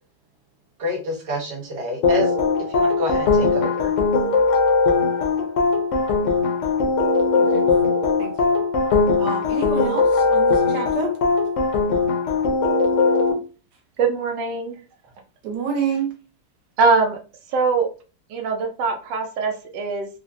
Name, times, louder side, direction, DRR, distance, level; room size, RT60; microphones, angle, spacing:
voice 1, 0.8-2.3 2.7-3.9, equal, 25° right, -1 dB, 0.8 m, -27 dB
sound 1, 2.0-13.3, left 4 dB, 60° left, 0.8 m, -20 dB
voice 2, 7.4-7.7 8.2-8.6 9.2-11.1 15.4-16.1, right 6 dB, 70° right, 2 dB, 1.5 m, -28 dB
voice 3, 14.0-14.7 16.8-17.2 17.5-17.9 18.3-20.1, right 4 dB, 85° right, 4 dB, 1.4 m, -22 dB
3.8 x 2.1 x 2.6 m, 0.34 s
omnidirectional pair, 1.9 m